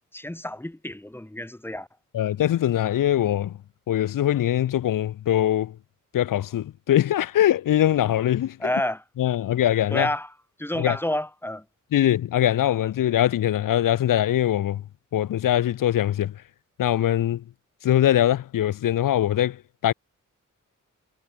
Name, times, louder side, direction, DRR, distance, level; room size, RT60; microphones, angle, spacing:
voice 1, 0.1-1.9 8.6-9.0 9.9-10.3 10.6-11.6, left 1 dB, 5° left, 1.3 m, -29 dB
voice 2, 2.1-3.6 3.9-5.8 6.1-8.7 9.2-10.1 10.8-11.0 11.9-14.8 15.1-16.3 16.8-17.4 17.8-19.9, left 12 dB, 75° left, 0.5 m, -22 dB
wide cardioid pair, 145°, 32 cm